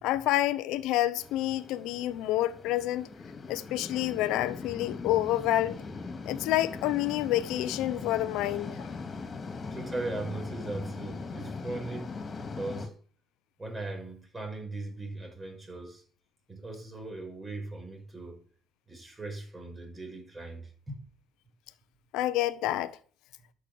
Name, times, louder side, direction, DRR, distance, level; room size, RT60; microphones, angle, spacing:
voice 1, 0.0-3.1 3.5-5.8 6.2-8.9 22.1-23.0, left 15 dB, 80° left, 0.9 m, -28 dB
sound 1, 1.2-12.9, left 4 dB, 35° left, 2.7 m, -40 dB
voice 2, 9.7-12.9 13.6-16.0 16.5-18.4 18.9-21.0, right 2 dB, 20° right, 5.9 m, -39 dB
11.5 x 6.5 x 7.9 m
cardioid pair, 100°, 0 cm